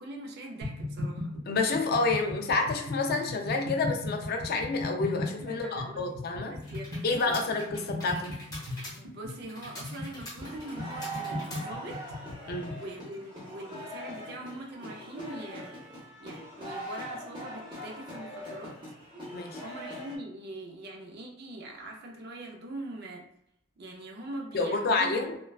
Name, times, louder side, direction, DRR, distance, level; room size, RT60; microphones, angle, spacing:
voice 1, 0.0-1.3 5.3-6.0 6.4-7.4 7.7-7.9 9.0-12.2 12.7-15.7 16.2-18.8 19.6-23.3 23.8-25.4, right 1 dB, 45° right, 0 dB, 0.5 m, -42 dB
sound 1, 0.6-12.9, left 2 dB, 85° right, 0.8 m, -37 dB
voice 2, 1.5-6.6 7.0-8.3 12.5-12.7 19.3-19.6 24.5-25.4, left 3 dB, 45° left, 3 dB, 0.4 m, -29 dB
sound 2, 6.6-12.1, left 1 dB, 15° left, 0.8 m, -46 dB
sound 3, 10.4-20.2, right 1 dB, 20° right, 0.8 m, -41 dB
3.1 x 2.2 x 2.3 m, 0.77 s
head